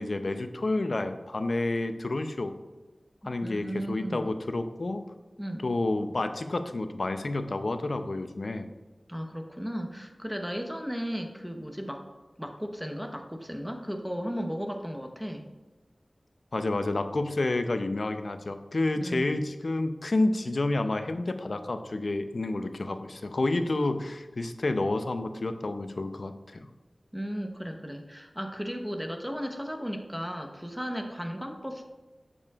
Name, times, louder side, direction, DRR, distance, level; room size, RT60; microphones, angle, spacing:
voice 1, 0.0-2.5 3.2-5.0 5.6-8.7 16.5-26.7, left 2 dB, 70° left, 8 dB, 0.5 m, -29 dB
voice 2, 3.2-4.3 5.4-5.7 9.1-12.1 12.4-15.5 19.0-19.4 27.1-31.8, equal, 5° right, 4 dB, 0.8 m, -35 dB
8.4 x 6.8 x 2.4 m, 1.2 s
wide cardioid pair, 45°, 0 cm